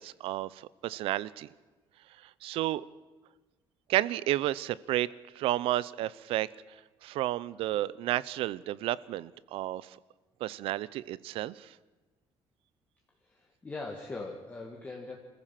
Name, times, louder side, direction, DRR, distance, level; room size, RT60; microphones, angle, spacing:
voice 1, 0.0-1.5 2.4-2.8 3.9-5.1 5.3-6.5 7.0-10.0 10.4-11.7, right 15 dB, 90° right, 21 dB, 0.7 m, -31 dB
voice 2, 13.2-15.2, left 3 dB, 15° left, 0 dB, 2.0 m, -41 dB
26.5 x 15.0 x 7.6 m, 1.2 s
cardioid pair, 170°, 9 cm